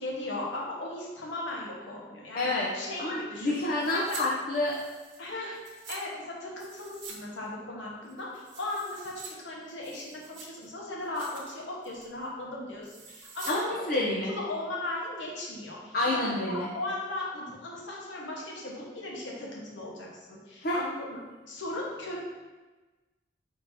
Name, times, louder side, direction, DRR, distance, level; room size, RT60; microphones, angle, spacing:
voice 1, 0.0-3.0 3.3-3.6 3.9-4.3 5.2-5.6 5.9-13.9 14.3-15.9 16.5-21.2 21.5-22.2, left 2 dB, 85° left, -4 dB, 1.2 m, -37 dB
voice 2, 2.3-2.7 3.0-4.8 13.5-14.3 15.9-16.7 20.6-20.8, left 2 dB, 50° left, -5 dB, 0.6 m, -28 dB
sound 1, 3.8-4.2 4.5-6.0 6.6-7.2 7.5-7.6 8.0-9.3 9.7-10.7 11.0-11.5 11.8-12.1 12.8-13.6 13.9-14.0, right 4 dB, 90° right, 0.9 m, -45 dB
4.3 x 2.7 x 4.4 m, 1.2 s
head